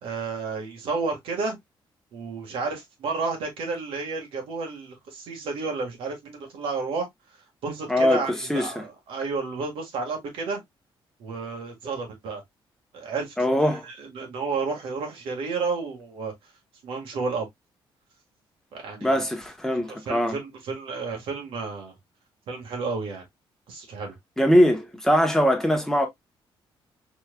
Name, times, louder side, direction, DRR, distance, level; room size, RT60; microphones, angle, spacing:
voice 1, 0.0-1.6 2.1-7.1 7.6-10.6 11.2-12.4 12.9-16.3 16.8-17.5 18.7-19.2 19.8-22.0 22.5-23.2 23.7-24.2, right 4 dB, 85° right, 1.6 m, -31 dB
voice 2, 7.9-8.2 8.5-8.8 13.4-13.8 19.0-20.4 24.4-26.1, equal, 5° left, 0.8 m, -21 dB
4.5 x 3.2 x 2.2 m
cardioid pair, 135°, 9 cm